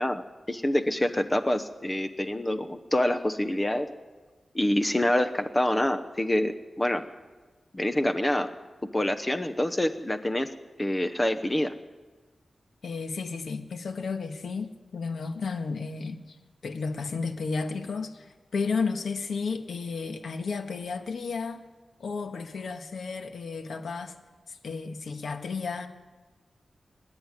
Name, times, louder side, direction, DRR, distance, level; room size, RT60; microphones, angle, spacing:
voice 1, 0.0-3.9 4.5-7.0 7.7-8.5 8.9-10.5 10.8-11.7, left 1 dB, 15° left, 0.9 m, -26 dB
voice 2, 12.8-16.4 16.6-21.6 22.0-24.1 24.5-25.9, left 4 dB, 85° left, 1.6 m, -33 dB
25.5 x 10.5 x 9.9 m
wide cardioid pair, 130°, 0 cm